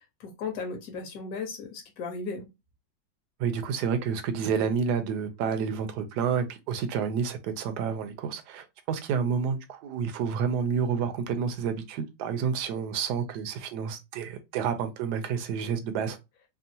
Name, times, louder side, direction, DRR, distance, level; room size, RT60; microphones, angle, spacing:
voice 1, 0.2-2.5, left 4 dB, 60° left, 1.3 m, -36 dB
voice 2, 3.4-16.2, right 6 dB, 70° right, 1.1 m, -29 dB
3.6 x 2.0 x 2.7 m
omnidirectional pair, 2.0 m